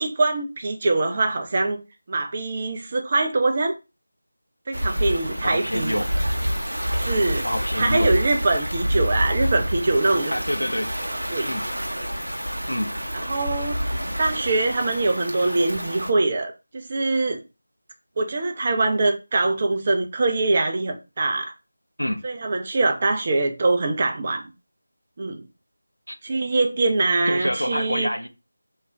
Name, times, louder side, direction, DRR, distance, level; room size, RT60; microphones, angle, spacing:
voice 1, 0.0-1.8 2.1-3.7 4.7-6.0 7.0-7.5 7.8-10.3 11.1-11.5 11.9-12.1 13.1-13.8 14.2-17.4 18.2-21.5 22.2-24.5 25.2-25.4 26.2-28.1, right 2 dB, 30° right, 0.3 m, -23 dB
sound 1, 4.7-16.1, equal, 75° right, 0.6 m, -28 dB
voice 2, 5.4-6.1 7.4-8.1 10.3-10.9 11.4-11.7 12.7-12.9 22.0-22.2 26.1-26.2 27.3-28.3, equal, 80° left, 0.5 m, -27 dB
2.4 x 2.1 x 3.2 m
figure-of-eight pair, 165°, 0 cm